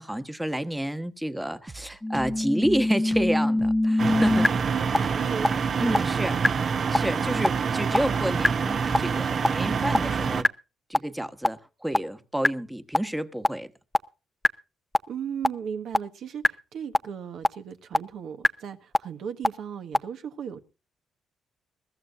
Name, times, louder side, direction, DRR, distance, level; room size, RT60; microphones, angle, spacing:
voice 1, 0.0-4.5 5.8-6.4 6.9-10.5 10.9-13.7, right 1 dB, 5° right, 1.2 m, -30 dB
Drum kit, 1.7-9.3, right 3 dB, 20° right, 0.8 m, -42 dB
sound 1, 2.0-4.5 4.9-5.0 5.4-5.5 5.9-6.0 6.4-6.5 6.9-7.0 7.4-7.5 7.9-8.0 8.4-8.5 8.9-9.0 9.4-9.5 9.9-10.0 10.4-10.5 10.9-11.0 11.4-11.5 11.9-12.0 12.4-12.5 12.9-13.0 13.4-13.5 13.9-14.0 14.4-14.5 14.9-15.0 15.4-15.5 15.9-16.0 16.4-16.5 16.9-17.0 17.4-17.5 17.9-18.0 18.4-18.5 18.9-19.0 19.4-19.5 19.9-20.0, left 1 dB, 10° left, 0.6 m, -20 dB
sound 2, 4.0-10.4, right 5 dB, 50° right, 1.0 m, -26 dB
voice 2, 4.4-6.1 7.6-7.7 8.3-8.4 15.1-20.6, right 8 dB, 70° right, 1.4 m, -36 dB
21.5 x 14.0 x 2.6 m
cardioid pair, 90°, 0 cm